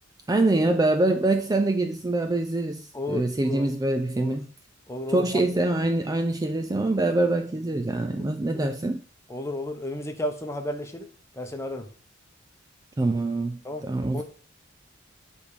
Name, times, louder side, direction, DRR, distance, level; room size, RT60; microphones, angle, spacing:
voice 1, 0.3-4.5 5.1-9.0 13.0-14.2, right 2 dB, 20° right, 0.4 m, -24 dB
voice 2, 2.9-3.7 4.2-4.4 4.9-5.4 8.1-8.3 8.5-8.7 9.3-11.1 11.3-11.9 13.6-13.8 14.1-14.2, left 1 dB, 15° left, 0.9 m, -33 dB
9.1 x 3.6 x 4.9 m
head